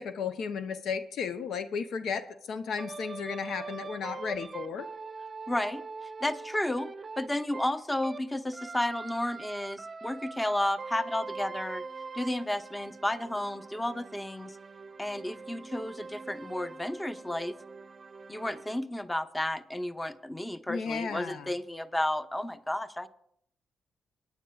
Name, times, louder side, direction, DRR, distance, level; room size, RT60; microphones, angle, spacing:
voice 1, 0.0-4.9 20.7-21.5, left 6 dB, 75° left, 10 dB, 0.6 m, -34 dB
sound 1, 2.8-8.3 8.5-18.8, right 4 dB, 40° right, 0.6 m, -43 dB
voice 2, 5.5-5.8 6.2-6.9 7.2-11.8 12.1-14.6 15.0-17.6 18.3-23.1, left 1 dB, 15° left, 10 dB, 0.8 m, -32 dB
24.5 x 9.4 x 2.3 m, 0.69 s
supercardioid pair, 50°, 0 cm